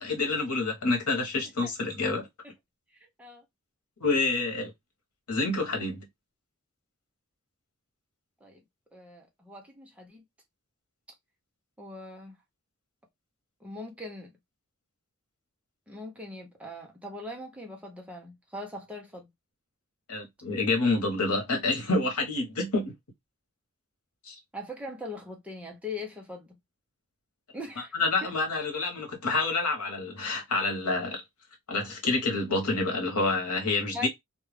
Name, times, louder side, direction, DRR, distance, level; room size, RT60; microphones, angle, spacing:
voice 1, 0.0-2.3 4.0-4.7 5.3-6.1 20.1-22.9 24.2-24.3 27.8-31.2 31.7-34.1, left 3 dB, 80° left, 1.0 m, -28 dB
voice 2, 2.9-3.4 8.4-8.6 8.9-10.2 11.8-12.4 13.6-14.3 15.9-19.3 24.5-26.5 27.5-28.3 33.9-34.1, left 2 dB, 5° right, 0.6 m, -41 dB
2.3 x 2.2 x 3.1 m
head